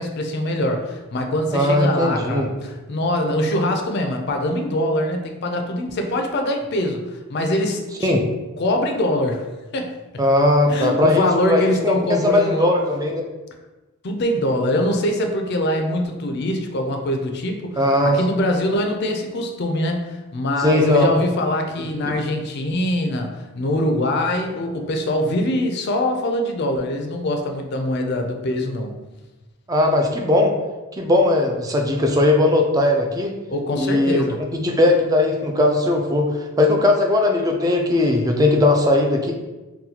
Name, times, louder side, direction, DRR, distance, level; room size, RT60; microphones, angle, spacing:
voice 1, 0.0-8.2 8.6-9.5 9.7-9.9 10.7-12.7 14.0-28.9 33.5-34.4, left 1 dB, 50° left, 3 dB, 0.4 m, -23 dB
voice 2, 1.5-2.5 8.0-8.2 10.2-13.2 17.8-18.2 20.6-21.1 22.1-22.2 29.7-30.5 30.9-33.3 33.8-34.2 34.5-39.3, left 1 dB, 15° right, 2 dB, 0.3 m, -18 dB
3.9 x 2.2 x 2.8 m, 1.1 s
head